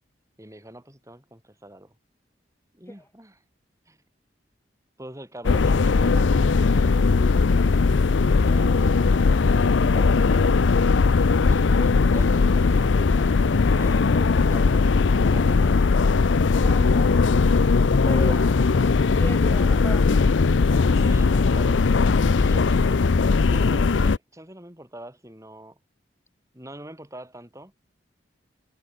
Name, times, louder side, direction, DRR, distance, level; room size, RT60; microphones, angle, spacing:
voice 1, 0.4-2.0 2.7-3.4 3.9-4.0 5.0-7.4 11.5-16.0 18.1-19.0 20.9-21.8 22.3-23.1 23.5-25.8 26.5-27.7, right 1 dB, 15° right, 8.0 m, -43 dB
sound 1, 5.4-24.2, left 4 dB, 90° left, 0.6 m, -19 dB
voice 2, 8.4-9.4 16.6-17.2 18.1-18.8 19.2-20.4, left 1 dB, 15° left, 3.1 m, -37 dB
head